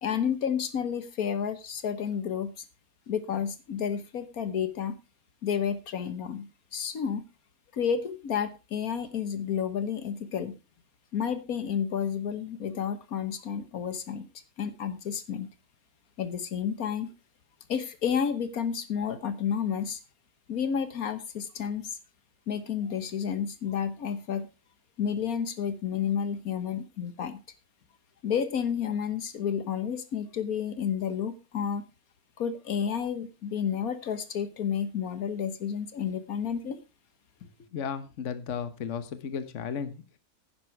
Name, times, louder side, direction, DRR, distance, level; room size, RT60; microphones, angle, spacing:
voice 1, 0.0-2.6 3.1-5.0 5.4-7.2 7.7-10.6 11.1-14.3 14.6-15.5 16.2-17.1 17.7-20.0 20.5-22.0 22.5-24.5 25.0-27.4 28.2-31.8 32.4-36.8, left 7 dB, 70° left, 12 dB, 1.6 m, -31 dB
voice 2, 37.7-40.2, left 7 dB, 55° left, 11 dB, 1.4 m, -34 dB
10.5 x 10.0 x 4.6 m, 0.29 s
omnidirectional pair, 1.6 m